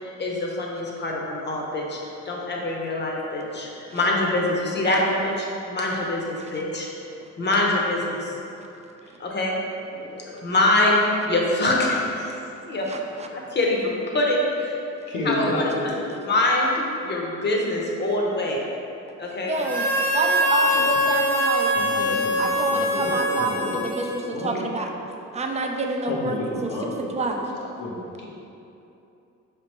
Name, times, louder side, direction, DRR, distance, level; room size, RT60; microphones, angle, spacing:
voice 1, 0.2-2.0 2.2-6.9 7.4-8.3 9.2-9.5 10.3-11.0 11.3-12.3 12.7-12.9 13.3-14.8 15.2-16.7 17.0-18.6 19.2-19.6, left 2 dB, 35° left, -2 dB, 0.8 m, -24 dB
voice 2, 9.9-10.4 15.1-15.9 21.7-23.7 24.0-24.6 26.1-27.2 27.8-28.3, left 1 dB, 90° left, -3 dB, 0.9 m, -31 dB
voice 3, 12.9-13.3 19.5-19.9 20.1-24.9 25.3-26.8 27.1-27.4, right 2 dB, 25° right, 2 dB, 0.4 m, -28 dB
Harmonica, 19.6-24.5, equal, 5° left, 0.8 m, -23 dB
4.9 x 3.4 x 2.9 m, 2.8 s
cardioid pair, 90°, 30 cm